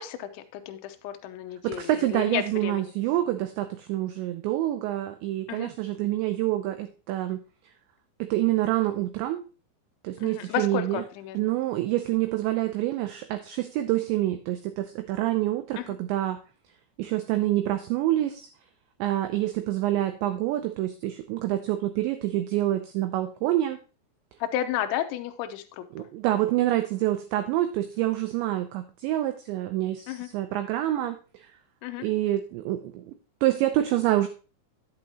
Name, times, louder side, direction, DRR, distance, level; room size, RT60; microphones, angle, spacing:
voice 1, 0.0-2.9 5.5-5.7 10.2-11.5 15.8-15.9 24.4-26.1 30.1-30.3 31.8-32.0, left 11 dB, 80° left, 7 dB, 2.9 m, -32 dB
voice 2, 1.6-7.4 8.2-9.4 10.0-11.0 11.3-16.4 17.0-18.5 19.0-23.8 25.9-31.2 32.0-33.0 33.4-34.3, right 14 dB, 90° right, 8 dB, 2.5 m, -27 dB
10.5 x 8.2 x 2.9 m, 0.35 s
omnidirectional pair, 5.9 m